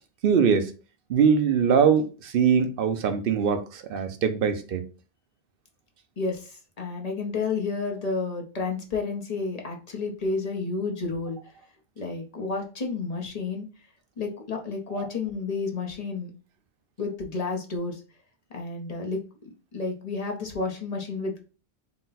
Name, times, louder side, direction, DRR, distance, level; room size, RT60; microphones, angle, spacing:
voice 1, 0.2-0.7 1.1-4.8, right 6 dB, 65° right, 0.8 m, -22 dB
voice 2, 6.2-11.5 12.0-13.9 14.2-16.3 17.0-18.0 18.5-21.4, left 4 dB, 40° left, 0.9 m, -31 dB
3.9 x 2.2 x 4.0 m
omnidirectional pair, 1.1 m